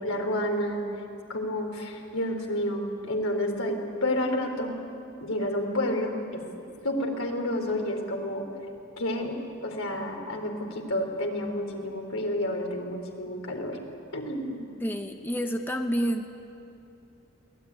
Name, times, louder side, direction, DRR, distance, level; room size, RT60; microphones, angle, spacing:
voice 1, 0.0-0.9 1.3-4.7 5.2-6.4 6.8-8.4 9.0-9.3 9.6-13.8 14.1-14.7, left 1 dB, 75° left, 2 dB, 3.8 m, -30 dB
voice 2, 14.8-16.3, equal, 10° left, 4 dB, 0.9 m, -29 dB
22.5 x 18.5 x 9.7 m, 2.7 s
head